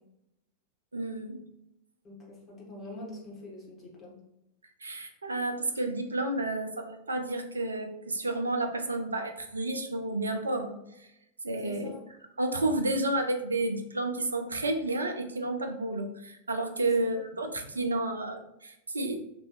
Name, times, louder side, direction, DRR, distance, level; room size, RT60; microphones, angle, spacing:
voice 1, 0.9-1.4 4.8-11.1 11.4-11.9 12.4-19.2, right 2 dB, 75° right, 5 dB, 0.4 m, -31 dB
voice 2, 2.0-4.2 11.6-12.0 17.1-17.2 17.7-17.9, left 2 dB, 25° left, -5 dB, 1.4 m, -44 dB
3.0 x 2.6 x 3.1 m, 0.86 s
figure-of-eight pair, 90°, 0 cm